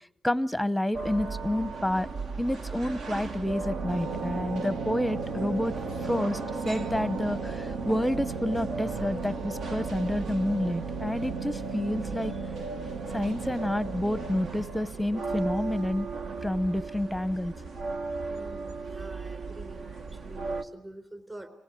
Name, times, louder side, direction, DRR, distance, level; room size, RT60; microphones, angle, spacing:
voice 1, 0.2-2.1 2.4-5.7 6.0-6.4 6.6-12.3 13.1-16.1 16.4-17.5, left 1 dB, 5° left, 15 dB, 0.8 m, -29 dB
sound 1, 0.9-20.6, right 4 dB, 70° right, 1.4 m, -37 dB
sound 2, 3.2-16.9, right 4 dB, 90° right, 1.6 m, -36 dB
voice 2, 18.3-21.5, right 1 dB, 25° right, 8 dB, 3.9 m, -46 dB
26.0 x 18.5 x 7.6 m, 0.84 s
cardioid pair, 75°, 0 cm